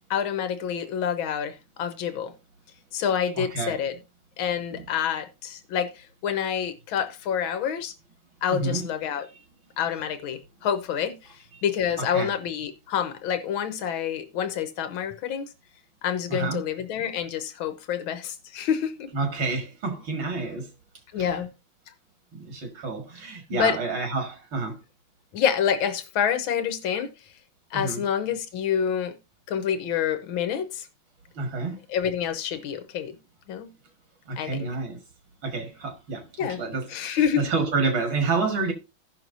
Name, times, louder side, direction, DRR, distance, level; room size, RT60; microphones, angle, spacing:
voice 1, 0.1-2.3 2.9-4.0 4.4-7.9 8.4-9.3 9.8-15.5 16.0-19.1 21.1-21.5 23.5-23.8 25.3-27.1 27.7-29.1 29.5-30.9 31.9-33.2 33.5-33.7 34.4-34.7 36.4-36.6 36.9-37.5, left 8 dB, 80° left, 1.8 m, -27 dB
voice 2, 3.4-3.8 4.7-4.8 8.6-8.9 12.1-12.3 16.3-16.6 19.1-20.7 21.2-21.3 22.3-24.8 27.8-28.0 31.4-31.8 34.3-35.0 35.4-36.3 36.6-38.7, right 3 dB, 75° right, 2.7 m, -29 dB
16.5 x 6.1 x 2.7 m
omnidirectional pair, 2.2 m